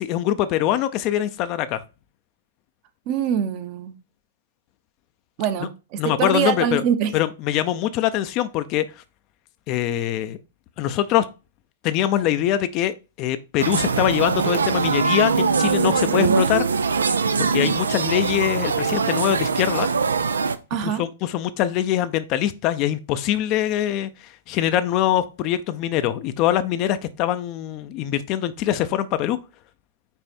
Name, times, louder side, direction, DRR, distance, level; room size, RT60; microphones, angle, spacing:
voice 1, 0.0-1.8 6.0-6.8 7.1-8.8 9.7-10.4 10.8-11.3 11.8-16.7 17.5-19.9 20.8-29.4, left 12 dB, 40° left, 0.6 m, -23 dB
voice 2, 3.1-3.9 5.4-7.1 16.1-16.5 20.7-21.0, right 8 dB, 40° right, 0.9 m, -24 dB
sound 1, 13.6-20.6, right 5 dB, 80° right, 0.5 m, -22 dB
5.5 x 4.4 x 4.3 m
hypercardioid pair, 115°, 0 cm